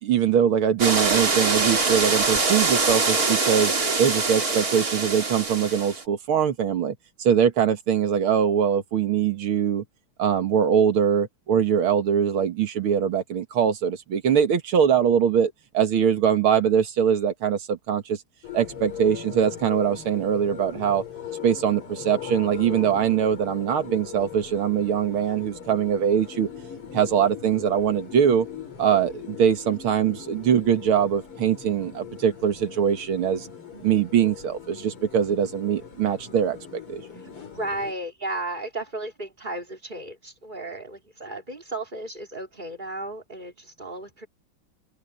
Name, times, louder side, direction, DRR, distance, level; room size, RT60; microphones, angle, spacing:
voice 1, 0.0-3.7 4.0-9.8 10.2-18.2 18.5-21.0 21.4-26.5 26.9-28.5 28.8-33.5 33.8-36.6 36.9-37.0, right 8 dB, 75° right, 2.4 m, -22 dB
sound 1, 0.8-6.0, right 3 dB, 40° right, 3.3 m, -23 dB
sound 2, 18.4-37.9, left 8 dB, 75° left, 4.2 m, -40 dB
voice 2, 37.5-44.3, right 2 dB, 20° right, 3.6 m, -34 dB
omnidirectional pair, 2.4 m